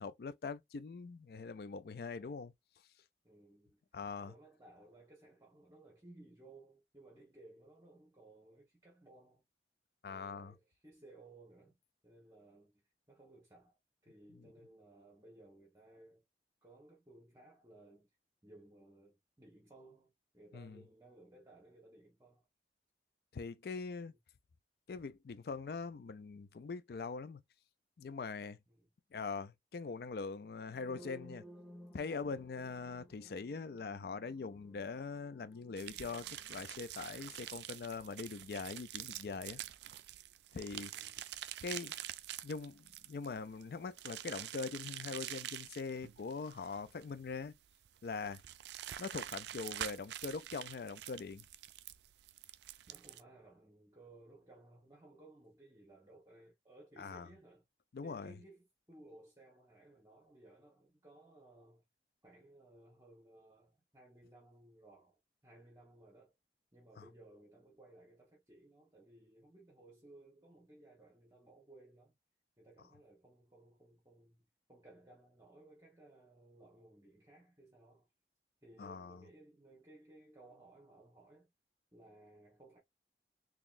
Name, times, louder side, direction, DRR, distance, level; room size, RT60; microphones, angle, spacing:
voice 1, 0.0-2.5 3.9-4.3 10.0-10.5 14.3-14.5 20.5-20.8 23.3-24.2 24.9-27.4 28.0-28.6 29.1-31.4 31.9-39.6 40.5-40.9 41.6-42.0 42.4-47.5 48.0-48.4 49.0-51.4 57.0-57.3 57.9-58.4 67.0-67.1 78.8-79.2, left 4 dB, 60° left, 0.4 m, -42 dB
voice 2, 3.2-3.8 4.2-9.4 10.1-11.8 12.0-13.8 14.0-16.2 16.6-18.1 18.4-22.5 28.7-28.9 40.9-41.4 52.9-57.6 58.0-61.8 62.2-66.3 66.7-72.1 72.6-78.1 78.6-81.5 81.9-82.8, right 2 dB, 20° right, 1.2 m, -60 dB
sound 1, 30.7-38.5, equal, ahead, 0.7 m, -58 dB
sound 2, 35.8-53.2, right 12 dB, 80° right, 0.3 m, -46 dB
3.9 x 3.0 x 2.5 m
head